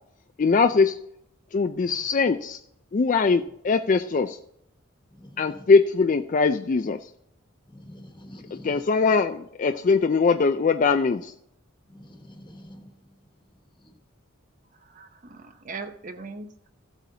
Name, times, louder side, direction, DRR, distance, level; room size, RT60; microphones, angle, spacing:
voice 1, 0.4-1.0 1.5-2.6 2.9-4.4 5.4-7.0 8.5-11.3, left 4 dB, 40° left, 0.3 m, -21 dB
voice 2, 5.1-5.6 7.7-8.8 11.9-12.8, equal, 20° left, 1.3 m, -46 dB
voice 3, 14.9-16.7, right 4 dB, 40° right, 0.7 m, -40 dB
15.0 x 8.1 x 2.8 m
head